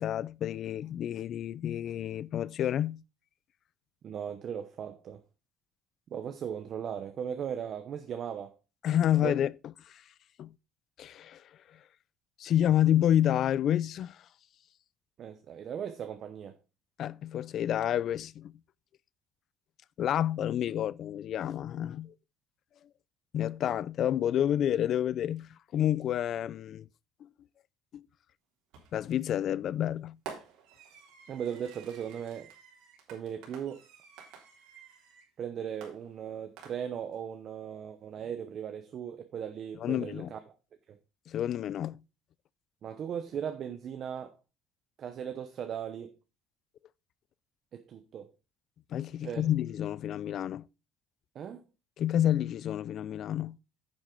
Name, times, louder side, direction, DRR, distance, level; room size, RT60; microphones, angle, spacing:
voice 1, 0.0-3.0 8.8-9.5 9.9-10.0 10.4-10.5 11.0-11.4 12.4-14.2 17.0-18.5 20.0-22.1 23.3-26.9 27.9-28.0 28.9-30.2 39.8-40.3 41.3-42.0 48.9-50.7 52.0-53.6, left 11 dB, 45° left, 0.4 m, -29 dB
voice 2, 4.0-5.2 6.1-8.6 9.2-9.4 15.2-16.6 31.3-32.5 33.1-33.8 35.4-40.4 40.9-41.0 42.8-44.3 45.0-46.2 47.7-48.3 49.2-49.5 51.3-51.6, right 8 dB, 40° right, 0.8 m, -38 dB
Fireworks, 28.7-29.1 30.3-35.3 35.8-37.1, right 7 dB, 80° right, 3.5 m, -50 dB
9.7 x 7.3 x 3.8 m
cardioid pair, 160°, 0 cm